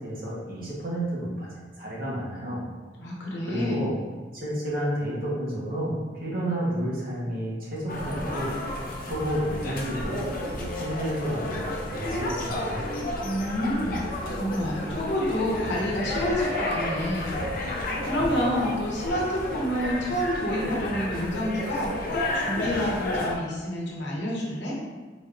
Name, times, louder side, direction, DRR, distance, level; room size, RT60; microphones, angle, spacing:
voice 1, 0.0-2.6 3.5-3.9 4.3-8.5 9.0-12.8, equal, 55° right, -6 dB, 1.1 m, -31 dB
voice 2, 3.0-3.9 13.2-17.4 17.6-24.8, equal, 70° left, -3 dB, 0.9 m, -28 dB
sound 1, 7.9-23.4, left 1 dB, 50° left, 0.6 m, -31 dB
4.0 x 3.5 x 2.5 m, 1.4 s
head